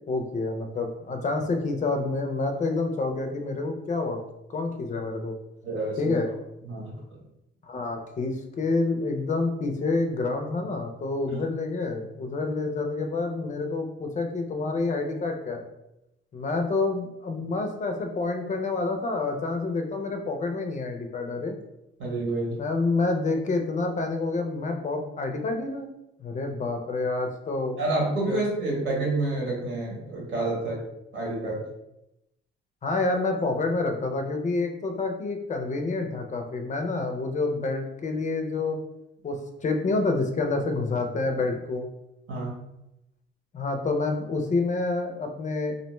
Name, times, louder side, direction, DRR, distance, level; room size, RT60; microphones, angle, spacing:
voice 1, 0.1-4.2 4.5-5.3 6.0-6.3 7.7-15.7 16.3-21.5 22.6-25.9 26.2-27.8 28.3-28.4 32.8-38.8 39.2-39.4 39.6-41.9 43.5-45.7, left 3 dB, 40° left, 4 dB, 0.4 m, -28 dB
voice 2, 5.6-6.2 6.6-7.2 11.3-11.4 22.0-22.6 27.8-30.8 31.1-31.6 42.3-42.5, right 2 dB, 80° right, -3 dB, 1.0 m, -29 dB
2.5 x 2.1 x 3.0 m, 0.87 s
cardioid pair, 90°, 20 cm